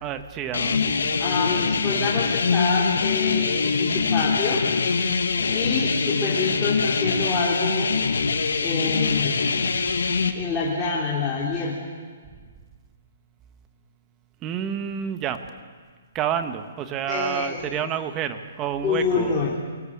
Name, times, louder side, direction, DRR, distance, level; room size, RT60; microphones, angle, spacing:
voice 1, 0.0-1.2 9.9-10.2 14.4-15.4 16.1-19.6, right 9 dB, 25° right, 9 dB, 1.4 m, -29 dB
sound 1, 0.5-10.3, left 5 dB, 85° left, 1.9 m, -23 dB
voice 2, 1.2-4.6 5.5-7.9 8.6-9.4 10.3-11.9 17.1-17.6 18.8-19.6, left 4 dB, 20° left, -6 dB, 3.4 m, -26 dB
23.0 x 16.5 x 8.7 m, 1.5 s
hypercardioid pair, 150°, 0 cm